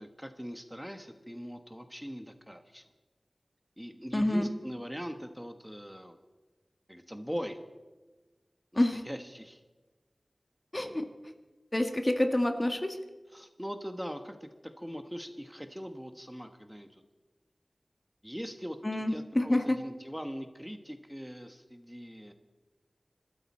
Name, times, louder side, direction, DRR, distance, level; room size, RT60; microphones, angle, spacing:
voice 1, 0.0-2.8 3.8-6.2 6.9-7.6 8.7-9.6 13.3-14.5 14.8-17.0 18.2-22.3, equal, ahead, 7 dB, 1.3 m, -41 dB
voice 2, 4.1-4.5 8.7-9.0 10.7-11.1 11.7-13.0 18.8-19.8, left 1 dB, 30° left, 6 dB, 1.4 m, -27 dB
24.5 x 13.0 x 4.3 m, 1.2 s
wide cardioid pair, 50°, 0 cm